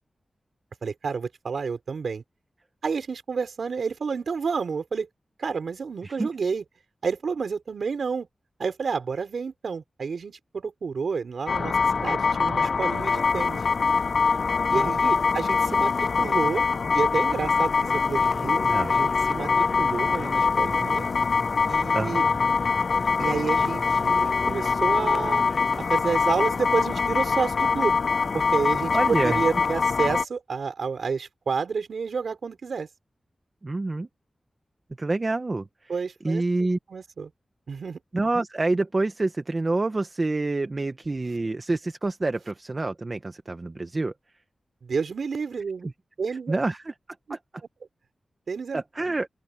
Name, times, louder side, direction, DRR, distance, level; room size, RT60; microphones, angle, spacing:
voice 1, 0.8-2.2 2.8-5.1 5.4-6.6 7.0-8.3 8.6-13.6 14.7-16.6 16.9-21.1 21.7-22.3 23.2-25.4 25.9-28.0 28.3-32.9 35.9-37.3 37.7-38.0 44.8-45.9 46.2-46.5 47.3-47.4 48.5-48.8, right 5 dB, 80° right, 4.9 m, -30 dB
sound 1, 11.5-30.2, left 5 dB, 65° left, 0.5 m, -23 dB
sound 2, 17.9-25.8, left 1 dB, 15° left, 4.1 m, -39 dB
voice 2, 28.9-29.4 33.6-34.1 35.0-35.9 36.2-36.8 38.1-44.1 45.8-45.9 46.3-46.9 47.3-47.4 48.7-49.3, right 2 dB, 35° right, 1.0 m, -27 dB
open air
wide cardioid pair, 120°, 0 cm